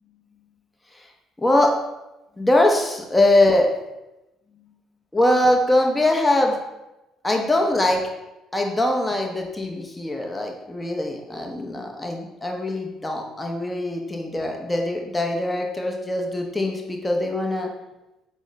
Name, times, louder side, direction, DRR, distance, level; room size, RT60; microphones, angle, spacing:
voice 1, 1.4-1.7 2.4-3.7 5.1-6.6 7.2-8.0 8.5-17.7, left 1 dB, 15° left, 1 dB, 0.7 m, -22 dB
4.9 x 2.1 x 4.0 m, 0.96 s
figure-of-eight pair, 50°, 0 cm